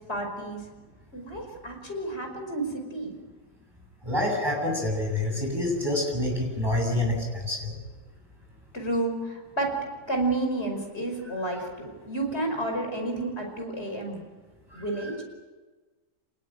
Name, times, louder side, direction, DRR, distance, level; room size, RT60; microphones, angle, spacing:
voice 1, 0.1-0.6 1.1-3.1 8.7-9.7 10.1-14.2 14.7-15.2, right 2 dB, 35° left, 3 dB, 5.5 m, -31 dB
voice 2, 4.0-7.7 14.7-14.8, left 1 dB, 15° right, 0 dB, 8.0 m, -27 dB
26.5 x 20.0 x 9.1 m, 1.3 s
omnidirectional pair, 1.9 m